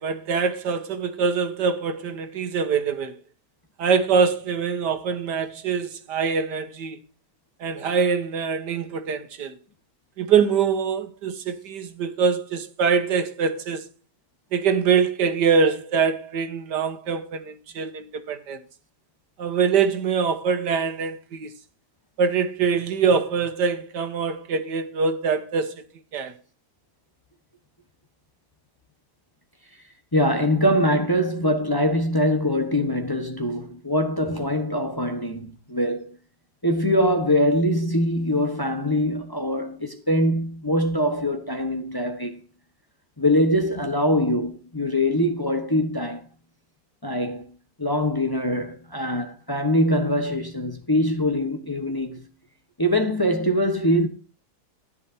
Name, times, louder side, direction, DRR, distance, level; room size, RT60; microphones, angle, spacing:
voice 1, 0.0-3.2 3.8-7.0 7.6-9.6 10.2-13.9 14.5-18.6 19.4-21.5 22.2-25.8 26.1-26.4, right 6 dB, 90° right, 1.9 m, -24 dB
voice 2, 30.1-36.1 36.6-42.4 43.2-46.2 47.0-47.5 47.8-52.3 52.8-54.1, equal, 15° left, 1.1 m, -23 dB
14.0 x 10.5 x 2.8 m
omnidirectional pair, 1.7 m